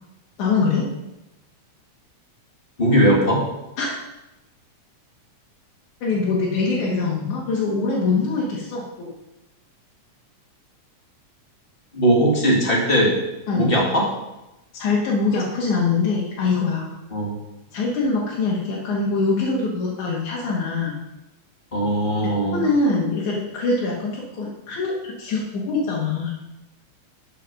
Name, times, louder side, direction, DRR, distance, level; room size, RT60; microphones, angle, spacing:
voice 1, 0.4-0.9 3.8-3.9 6.0-9.1 13.5-13.7 14.7-16.9 17.7-21.0 22.5-26.3, left 4 dB, 85° left, -5 dB, 3.2 m, -23 dB
voice 2, 2.8-3.4 11.9-13.1 13.5-14.1 17.1-17.3 21.7-22.6, right 1 dB, 20° left, -2 dB, 2.0 m, -19 dB
11.5 x 6.2 x 5.3 m, 0.96 s
omnidirectional pair, 3.4 m